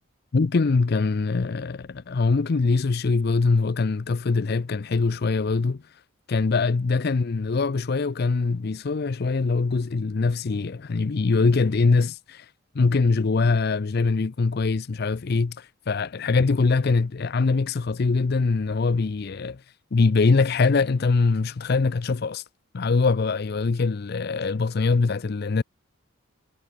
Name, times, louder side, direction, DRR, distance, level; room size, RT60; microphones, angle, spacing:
voice 1, 0.3-5.8 6.3-12.5 12.7-19.6 19.9-22.4 22.7-25.6, left 4 dB, 50° left, 0.5 m, -23 dB
head